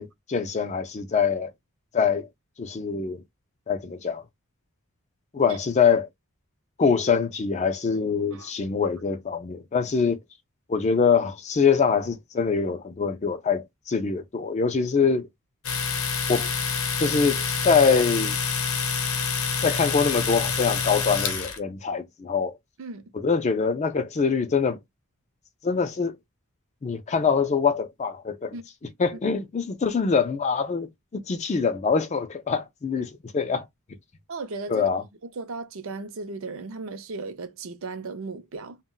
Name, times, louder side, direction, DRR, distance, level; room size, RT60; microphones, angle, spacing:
voice 1, 0.0-1.5 1.9-2.3 2.6-3.2 3.7-4.2 5.3-6.1 6.8-10.2 10.7-15.3 16.3-16.5 17.0-18.4 19.6-22.5 23.1-24.8 25.6-26.2 26.8-28.6 29.0-33.7 34.7-35.0, left 5 dB, 30° left, 0.3 m, -24 dB
Domestic sounds home sounds, 15.6-21.6, left 5 dB, 70° left, 0.6 m, -27 dB
voice 2, 22.8-23.1 28.5-28.6 29.1-29.2 32.9-33.1 34.3-34.9 35.2-38.8, right 3 dB, 65° right, 0.5 m, -36 dB
2.1 x 2.0 x 3.7 m
head